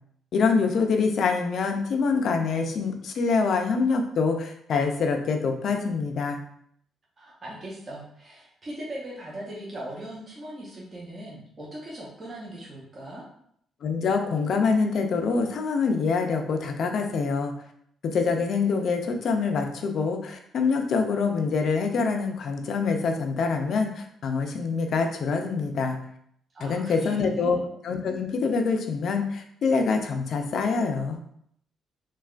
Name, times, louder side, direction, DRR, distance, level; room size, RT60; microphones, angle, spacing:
voice 1, 0.3-6.4 13.8-17.5 18.0-26.0 26.6-27.6 27.8-31.2, left 4 dB, 60° left, 4 dB, 0.4 m, -25 dB
voice 2, 7.2-13.2 26.5-27.6, right 1 dB, 35° right, -5 dB, 0.8 m, -39 dB
3.2 x 2.2 x 2.4 m, 0.69 s
cardioid pair, 90°, 0 cm